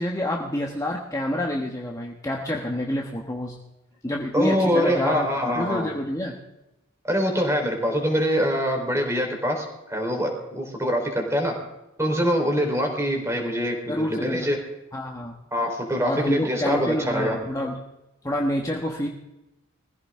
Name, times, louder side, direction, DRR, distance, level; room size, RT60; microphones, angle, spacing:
voice 1, 0.0-3.6 4.0-6.4 13.9-14.5 14.9-15.4 16.0-17.8 18.2-19.1, left 1 dB, 15° left, 0 dB, 1.2 m, -28 dB
voice 2, 4.3-5.9 7.1-11.5 12.0-14.6 15.5-17.4, equal, 15° right, 2 dB, 3.9 m, -24 dB
22.0 x 15.5 x 3.7 m, 0.95 s
head